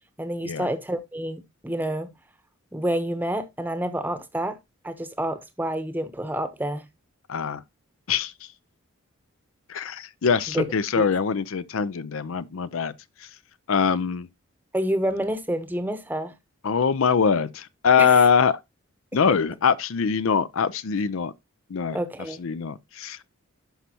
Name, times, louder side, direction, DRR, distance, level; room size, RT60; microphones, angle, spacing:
voice 1, 0.2-2.1 2.7-4.6 4.8-6.9 10.5-10.6 11.0-11.1 14.7-16.3 18.0-18.1 21.9-22.4, right 1 dB, 10° right, 0.8 m, -28 dB
voice 2, 7.3-7.6 8.1-8.5 9.7-12.9 13.2-13.4 13.7-14.3 16.6-18.6 19.1-21.3 21.7-22.0 22.3-23.3, left 6 dB, 65° left, 0.5 m, -23 dB
11.5 x 5.6 x 2.8 m
head